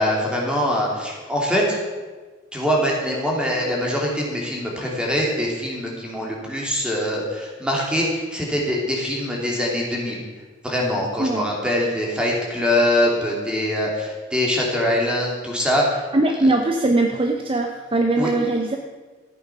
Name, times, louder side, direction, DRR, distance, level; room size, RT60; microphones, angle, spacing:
voice 1, 0.0-1.8 2.5-10.2 10.6-16.0 18.2-18.3, left 1 dB, 5° right, -2 dB, 2.8 m, -23 dB
voice 2, 16.1-18.8, right 2 dB, 30° right, 4 dB, 0.7 m, -21 dB
14.0 x 8.5 x 6.0 m, 1.3 s
head